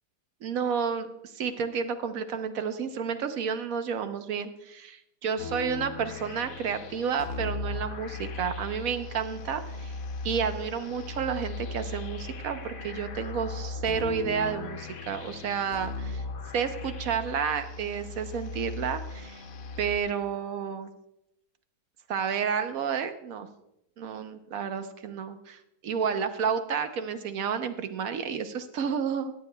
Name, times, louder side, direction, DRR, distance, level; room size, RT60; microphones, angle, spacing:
voice 1, 0.4-9.9 10.2-16.2 16.5-19.4 19.8-20.9 22.1-23.5 24.0-29.3, right 7 dB, 65° right, 9 dB, 1.2 m, -31 dB
sound 1, 5.4-20.0, left 3 dB, 60° left, 1.2 m, -38 dB
18.0 x 9.4 x 2.2 m, 0.82 s
omnidirectional pair, 1.7 m